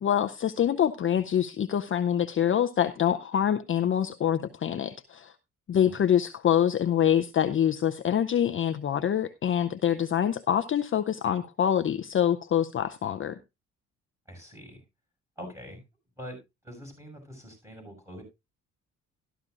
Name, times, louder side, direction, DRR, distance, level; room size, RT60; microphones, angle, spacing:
voice 1, 0.0-5.3 5.7-13.4, left 9 dB, 40° left, 0.6 m, -25 dB
voice 2, 14.3-14.8 15.4-15.8 16.2-16.4 16.6-18.2, equal, 10° right, 6.5 m, -44 dB
13.0 x 12.5 x 2.5 m
cardioid pair, 90°, 30 cm